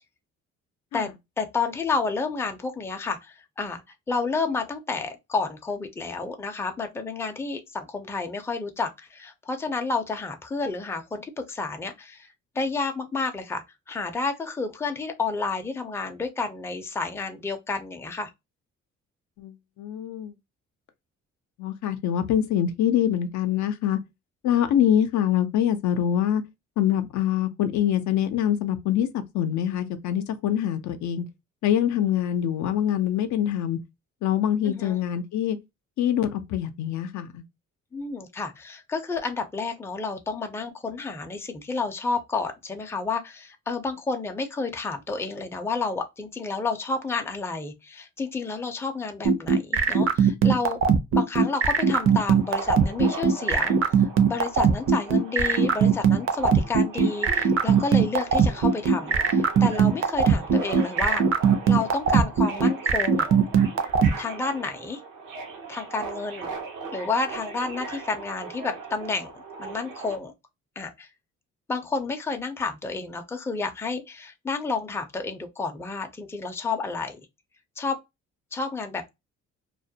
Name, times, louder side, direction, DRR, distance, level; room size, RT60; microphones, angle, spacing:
voice 1, 1.4-3.8 4.1-12.3 12.6-18.3 34.6-35.0 37.9-50.8 51.1-61.2 61.7-63.3 64.2-65.0 65.7-66.5 66.9-69.3 69.6-70.3 70.8-71.1 71.7-77.2 77.8-78.0 78.5-79.1, left 4 dB, 10° left, 0.4 m, -30 dB
voice 2, 19.4-20.3 21.6-24.0 24.4-26.4 26.8-31.3 31.6-33.8 34.2-35.6 36.0-37.4, left 10 dB, 70° left, 0.5 m, -24 dB
sound 1, 49.2-64.1, right 6 dB, 45° right, 0.5 m, -19 dB
Subway metro underground, 51.4-70.2, right 4 dB, 90° right, 0.7 m, -39 dB
2.3 x 2.0 x 2.7 m
cardioid pair, 90°, 30 cm